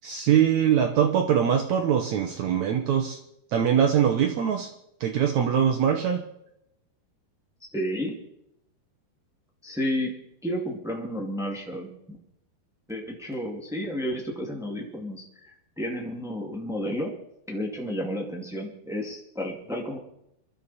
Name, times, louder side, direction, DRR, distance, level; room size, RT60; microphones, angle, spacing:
voice 1, 0.0-3.2 3.5-4.7 5.0-6.3, right 8 dB, 80° right, 4 dB, 1.6 m, -22 dB
voice 2, 7.7-8.2 9.6-10.1 10.4-12.2 12.9-17.1 17.5-20.0, equal, 5° right, 0 dB, 0.3 m, -31 dB
23.5 x 12.5 x 4.2 m, 0.80 s
omnidirectional pair, 4.6 m